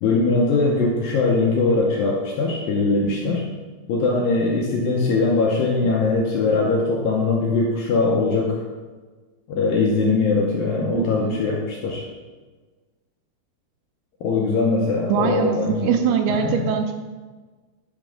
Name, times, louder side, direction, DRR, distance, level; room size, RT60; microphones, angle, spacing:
voice 1, 0.0-3.5 3.9-8.6 9.5-12.0 14.2-16.0 16.3-16.7, left 3 dB, 80° left, -2 dB, 2.1 m, -21 dB
voice 2, 10.9-11.4 15.1-16.9, right 7 dB, 80° right, 5 dB, 2.4 m, -22 dB
9.1 x 5.2 x 3.7 m, 1.3 s
omnidirectional pair, 4.8 m